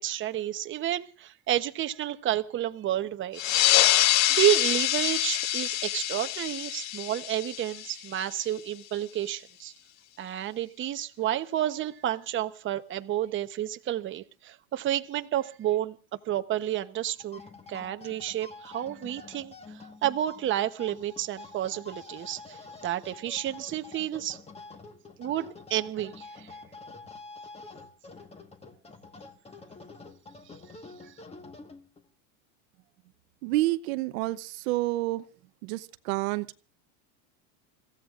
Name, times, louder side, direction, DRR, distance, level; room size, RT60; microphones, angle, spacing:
voice 1, 0.0-3.4 4.3-9.7 10.2-15.9 16.3-17.4 17.7-24.4 25.2-26.6 30.5-30.6 31.1-31.2, right 12 dB, 30° right, 0.9 m, -30 dB
sound 1, 3.4-8.4, left 14 dB, 40° left, 0.7 m, -25 dB
sound 2, 17.1-32.1, left 3 dB, 15° left, 1.5 m, -47 dB
voice 2, 33.4-35.2 35.6-36.6, right 18 dB, 70° right, 0.9 m, -29 dB
30.0 x 16.0 x 2.5 m
supercardioid pair, 130°, 42 cm